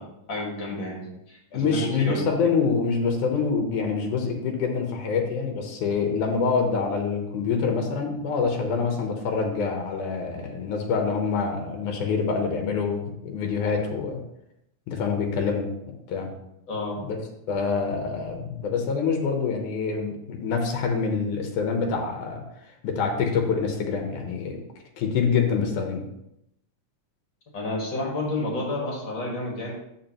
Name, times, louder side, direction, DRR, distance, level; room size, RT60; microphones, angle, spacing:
voice 1, 0.0-2.2 16.7-17.0 27.5-29.7, left 2 dB, 45° left, -2 dB, 2.2 m, -30 dB
voice 2, 1.5-14.2 14.9-15.7 16.1-16.3 17.0-17.2 17.5-22.4 22.8-24.6 25.0-26.1, left 5 dB, 85° left, 3 dB, 2.5 m, -26 dB
13.0 x 4.8 x 3.0 m, 0.80 s
omnidirectional pair, 3.4 m